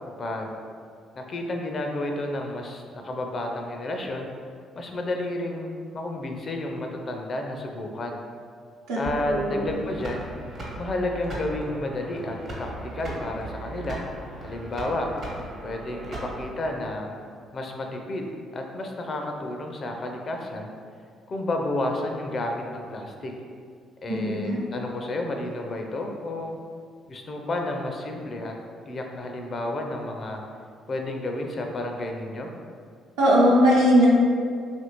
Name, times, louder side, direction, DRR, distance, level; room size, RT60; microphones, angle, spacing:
voice 1, 0.2-0.5 1.1-4.3 4.8-8.2 8.9-10.3 10.8-14.0 14.4-15.1 15.6-17.1 17.5-20.7 21.3-23.3 24.0-26.6 27.1-28.5 28.9-30.4 30.9-32.5, left 1 dB, 45° left, 2 dB, 0.4 m, -31 dB
sound 1, 9.0-16.7, right 1 dB, 50° right, 0.9 m, -38 dB
voice 2, 9.3-9.7 24.1-24.6 33.2-34.1, equal, 80° right, -6 dB, 0.7 m, -19 dB
2.9 x 2.6 x 2.9 m, 2.2 s
hypercardioid pair, 50°, 0 cm